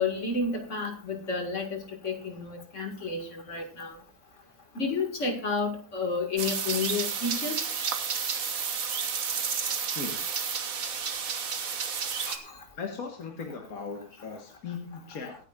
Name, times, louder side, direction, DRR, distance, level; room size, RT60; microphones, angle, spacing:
voice 1, 0.0-3.9 4.8-7.5 12.3-12.4, left 4 dB, 50° left, 2.4 m, -31 dB
sound 1, 6.4-12.4, right 6 dB, 65° right, 1.7 m, -31 dB
voice 2, 12.8-15.4, left 5 dB, 70° left, 2.0 m, -38 dB
24.0 x 9.6 x 2.5 m
omnidirectional pair, 1.6 m